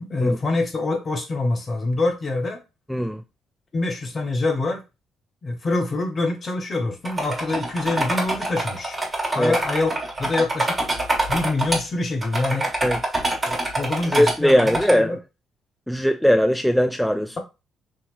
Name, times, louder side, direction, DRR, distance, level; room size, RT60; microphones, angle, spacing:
voice 1, 0.1-2.6 3.7-4.8 5.4-9.0 9.3-9.9 10.2-10.8 11.3-12.7 13.5-15.2, left 2 dB, 40° left, 1.0 m, -25 dB
voice 2, 2.9-3.2 9.3-9.6 12.8-13.0 14.0-15.2 15.9-17.4, equal, ahead, 0.3 m, -19 dB
sound 1, 7.0-11.8 12.2-14.9, right 2 dB, 25° right, 1.5 m, -25 dB
3.7 x 2.8 x 2.5 m
figure-of-eight pair, 45°, 0 cm